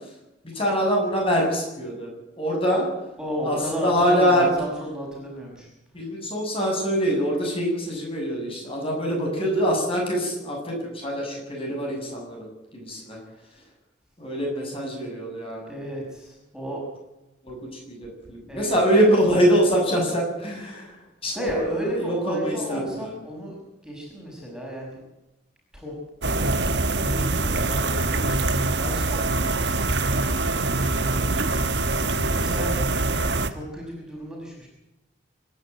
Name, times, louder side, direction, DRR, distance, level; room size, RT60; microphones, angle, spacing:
voice 1, 0.5-2.1 2.4-2.8 3.4-4.5 5.9-12.5 12.7-13.2 14.2-15.7 17.4-23.1, equal, 30° left, 0 dB, 7.7 m, -24 dB
voice 2, 3.2-5.7 15.7-16.8 18.5-18.8 21.3-23.6 23.8-25.0 25.7-26.0 26.3-26.5 26.8-28.4 28.7-31.8 32.1-32.8 33.5-34.7, equal, 5° right, -3 dB, 6.0 m, -33 dB
sound 1, 26.2-33.5, right 2 dB, 65° right, 1.4 m, -24 dB
26.0 x 11.5 x 9.3 m, 0.94 s
head